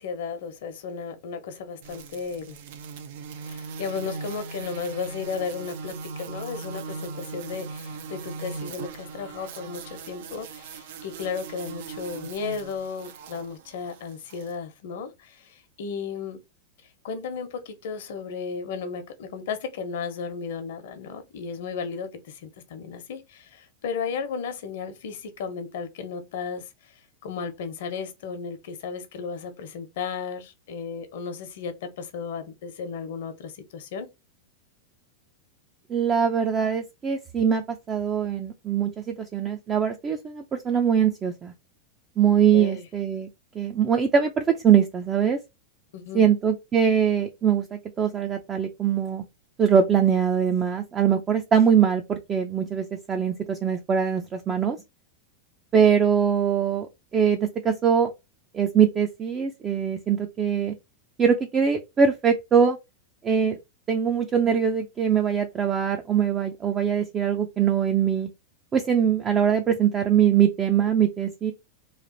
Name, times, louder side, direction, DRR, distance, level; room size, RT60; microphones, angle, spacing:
voice 1, 0.0-2.6 3.4-16.4 17.0-26.6 27.2-34.1 42.5-42.9 45.9-46.3, left 5 dB, 70° left, 1.0 m, -34 dB
sound 1, 1.8-14.5, right 5 dB, 65° right, 0.6 m, -39 dB
voice 2, 35.9-41.5 42.2-43.3 43.5-45.4 46.1-49.2 49.6-54.8 55.7-56.9 57.1-58.1 58.5-60.7 61.2-62.8 63.2-63.6 63.9-68.3 68.7-71.5, right 7 dB, 20° right, 0.5 m, -22 dB
3.3 x 2.5 x 3.9 m
supercardioid pair, 150°, 0 cm